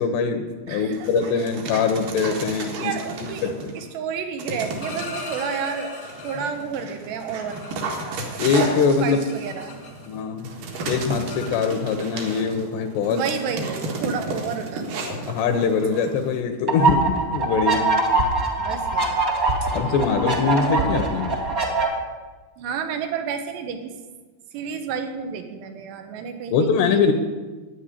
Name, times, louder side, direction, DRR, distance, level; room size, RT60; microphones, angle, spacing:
voice 1, 0.0-2.9 3.4-3.7 8.4-9.2 10.1-10.5 10.9-13.3 15.3-17.9 19.7-21.3 26.5-27.1, left 5 dB, 80° left, 6 dB, 2.9 m, -22 dB
Dog, 0.9-3.8 4.4-5.4 6.0-16.4, right 3 dB, 55° right, 2.9 m, -33 dB
voice 2, 2.8-6.0 6.2-7.6 9.0-9.8 13.1-15.2 18.6-19.2 22.6-23.9 24.5-27.1, right 6 dB, 75° right, 6 dB, 3.3 m, -31 dB
sound 1, 4.6-6.7 7.2-10.3 10.5-12.1 13.0-13.1 13.4-13.8 14.2-14.5 14.8-15.1 15.3-15.6 15.9-21.2, left 3 dB, 30° left, 1.3 m, -40 dB
sound 2, 16.7-21.9, right 3 dB, 40° right, 1.3 m, -22 dB
10.0 x 9.7 x 10.0 m, 1.3 s
omnidirectional pair, 5.1 m